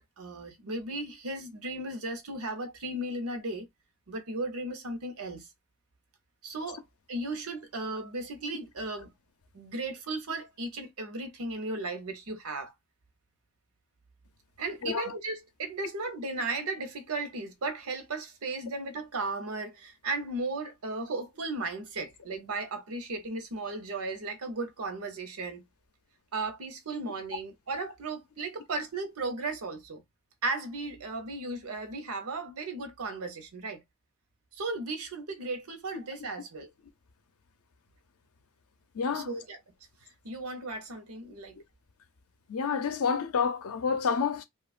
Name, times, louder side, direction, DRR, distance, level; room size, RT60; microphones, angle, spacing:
voice 1, 0.0-3.7 4.1-5.5 6.4-6.8 7.1-9.1 9.5-12.7 14.6-25.6 26.3-30.0 30.4-33.8 34.5-36.7 39.1-39.6 40.2-41.6, right 2 dB, 80° right, 0.8 m, -35 dB
voice 2, 39.0-39.3 42.5-44.4, left 6 dB, 75° left, 0.5 m, -28 dB
2.8 x 2.3 x 2.4 m
head